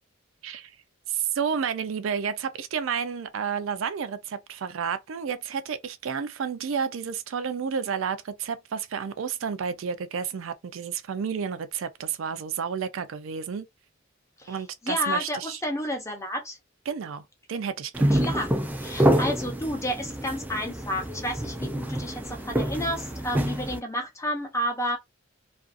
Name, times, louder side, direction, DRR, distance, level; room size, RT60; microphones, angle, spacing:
voice 1, 1.1-13.7 14.5-15.6 16.9-18.2, right 7 dB, 75° right, 0.4 m, -31 dB
voice 2, 14.4-16.6 18.1-18.5 18.8-25.0, equal, 15° left, 0.7 m, -31 dB
sound 1, 17.9-23.8, right 1 dB, 10° right, 0.3 m, -27 dB
2.5 x 2.4 x 2.4 m
head